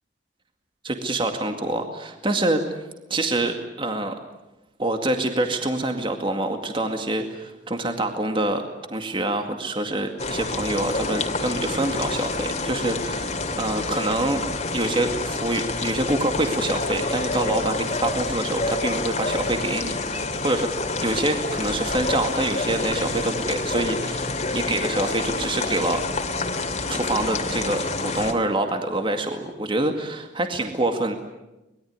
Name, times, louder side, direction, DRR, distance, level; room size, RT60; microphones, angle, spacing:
voice 1, 0.8-2.6 3.1-4.1 4.8-8.6 8.9-14.4 14.7-20.7 21.0-26.0 26.9-31.1, right 2 dB, 30° right, 5 dB, 2.1 m, -26 dB
sound 1, 10.2-28.3, left 3 dB, 40° left, 2.7 m, -28 dB
24.5 x 21.5 x 9.6 m, 0.99 s
head